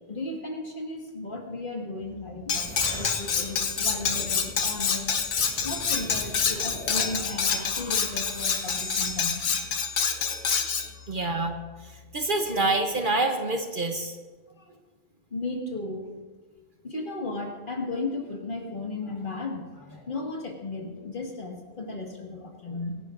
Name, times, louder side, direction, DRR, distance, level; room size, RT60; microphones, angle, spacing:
voice 1, 0.1-5.1 5.6-9.7 10.9-11.4 14.6-14.8 15.3-16.1 16.8-23.0, left 2 dB, 45° left, 0 dB, 1.9 m, -35 dB
Musical instrument, 2.0-12.8, left 6 dB, 5° right, 3.9 m, -50 dB
Cutlery silverware, 2.5-10.9, left 6 dB, 80° left, 1.2 m, -27 dB
sound 1, 2.5-9.3, left 1 dB, 10° left, 2.0 m, -41 dB
voice 2, 11.1-11.5 12.1-14.2, right 2 dB, 50° right, 4 dB, 1.0 m, -26 dB
25.0 x 11.0 x 2.5 m, 1.4 s
omnidirectional pair, 1.2 m